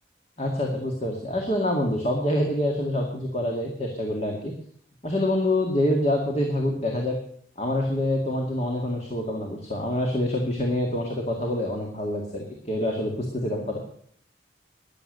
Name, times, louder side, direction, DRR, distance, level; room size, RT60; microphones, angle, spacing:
voice 1, 0.4-4.5 5.0-7.2 7.6-13.8, left 1 dB, 35° left, 1 dB, 2.1 m, -26 dB
13.5 x 10.5 x 6.7 m, 0.62 s
head